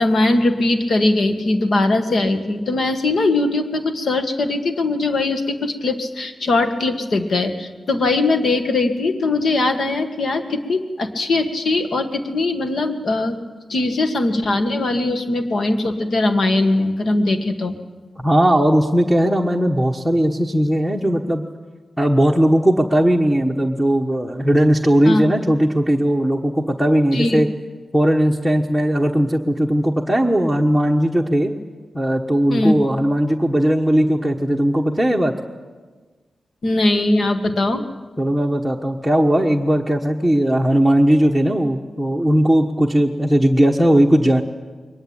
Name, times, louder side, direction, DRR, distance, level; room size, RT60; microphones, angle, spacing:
voice 1, 0.0-13.4 13.7-17.8 25.1-25.2 27.1-27.4 32.5-32.7 36.6-37.8, left 2 dB, 60° left, 7 dB, 1.8 m, -20 dB
voice 2, 18.2-21.4 22.0-27.5 27.9-31.5 31.9-35.3 38.2-44.4, equal, ahead, -1 dB, 1.3 m, -18 dB
22.0 x 19.5 x 8.9 m, 1.4 s
wide cardioid pair, 120°, 0 cm